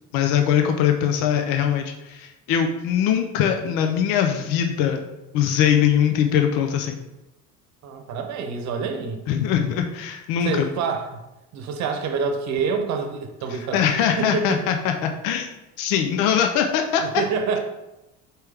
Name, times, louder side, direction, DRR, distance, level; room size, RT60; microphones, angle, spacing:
voice 1, 0.1-5.0 5.3-7.0 9.3-10.7 13.7-15.5 15.8-17.0, left 9 dB, 75° left, 5 dB, 0.6 m, -21 dB
voice 2, 7.8-9.2 10.4-11.2 11.5-13.8 14.2-14.7 17.0-17.6, right 5 dB, 55° right, 5 dB, 0.8 m, -27 dB
4.4 x 3.4 x 3.3 m, 0.97 s
cardioid pair, 115°, 33 cm